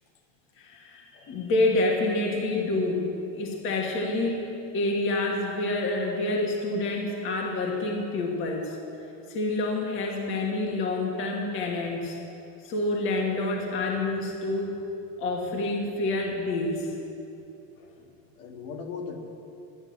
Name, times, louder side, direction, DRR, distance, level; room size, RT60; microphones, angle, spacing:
voice 1, 0.6-8.8 9.3-12.2 12.6-14.7 15.2-16.9, left 2 dB, 30° left, 0 dB, 1.5 m, -28 dB
voice 2, 18.4-19.2, left 5 dB, 75° left, 1 dB, 2.1 m, -39 dB
12.0 x 11.0 x 7.4 m, 2.7 s
cardioid pair, 175°, 39 cm